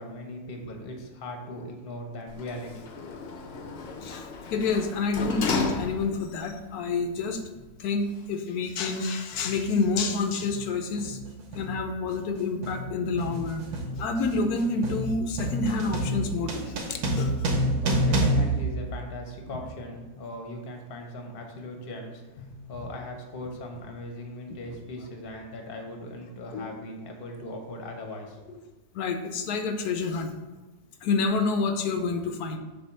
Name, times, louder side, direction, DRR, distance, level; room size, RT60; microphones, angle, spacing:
voice 1, 0.0-3.0 17.8-28.6, left 1 dB, 45° left, 2 dB, 1.0 m, -39 dB
Sliding door, 2.3-6.4 6.8-6.9, left 3 dB, 60° left, 0.6 m, -33 dB
voice 2, 4.5-11.2 11.5-13.7 14.0-16.9 17.2-17.5 22.4-22.9 26.5-26.7 29.0-30.3 31.0-32.6, left 4 dB, 90° left, 6 dB, 1.2 m, -28 dB
sound 1, 9.3-9.5 10.4-10.7 11.0-19.5, right 1 dB, 85° right, 1.5 m, -29 dB
7.0 x 2.7 x 5.3 m, 1.1 s
omnidirectional pair, 1.6 m